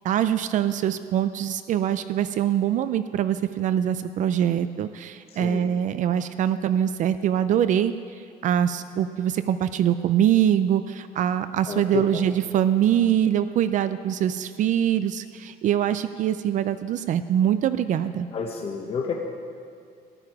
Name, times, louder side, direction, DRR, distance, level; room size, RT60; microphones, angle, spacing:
voice 1, 0.0-7.9 8.4-18.3, right 10 dB, 55° right, 12 dB, 0.4 m, -23 dB
voice 2, 5.3-5.7 11.7-12.3 18.3-19.1, left 5 dB, 35° left, 0 dB, 1.0 m, -30 dB
14.0 x 10.5 x 4.7 m, 2.4 s
cardioid pair, 170°, 16 cm